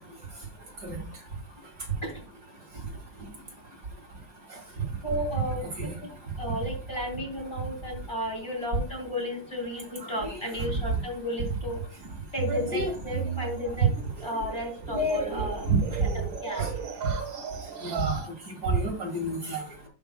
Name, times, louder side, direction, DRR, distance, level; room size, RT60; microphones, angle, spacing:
voice 1, 5.0-6.1 6.4-11.8 12.3-13.9 14.2-15.6 16.1-16.7, left 1 dB, 15° left, -3 dB, 3.1 m, -33 dB
sound 1, 12.0-18.3, right 7 dB, 75° right, 2.2 m, -37 dB
voice 2, 12.5-12.9 14.9-15.8 16.6-16.7 17.8-18.2 18.5-19.6, right 2 dB, 55° right, 1 dB, 2.4 m, -29 dB
11.5 x 5.2 x 2.2 m, 0.35 s
omnidirectional pair, 2.2 m